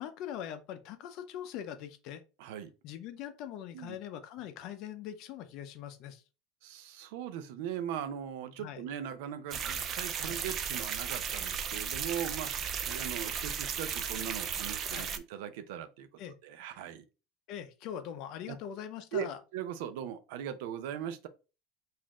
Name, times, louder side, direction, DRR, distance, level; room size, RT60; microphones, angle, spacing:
voice 1, 0.0-2.2 2.8-6.2 8.6-8.9 10.2-10.4 14.9-15.2 16.2-16.3 17.5-19.4, left 10 dB, 50° left, 0.5 m, -42 dB
voice 2, 2.4-2.7 3.7-4.0 6.6-16.1 16.4-17.1 18.5-18.6 19.1-21.3, right 9 dB, 80° right, 0.5 m, -39 dB
sound 1, 9.5-15.2, right 7 dB, 30° right, 0.3 m, -35 dB
4.1 x 2.5 x 2.9 m
cardioid pair, 170°, 0 cm